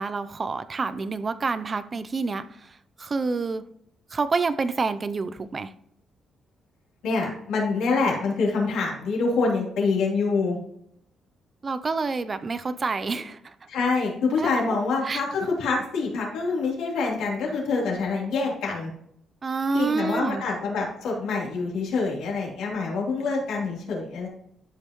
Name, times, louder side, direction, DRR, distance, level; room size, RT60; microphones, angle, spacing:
voice 1, 0.0-2.5 3.0-3.6 4.1-5.7 11.6-13.5 14.4-14.5 15.0-15.2 19.4-20.4, right 4 dB, 25° right, 0.5 m, -28 dB
voice 2, 7.0-10.6 13.7-18.9 19.7-24.3, left 4 dB, 90° left, 3.2 m, -26 dB
12.5 x 5.4 x 3.0 m
cardioid pair, 160°, 0 cm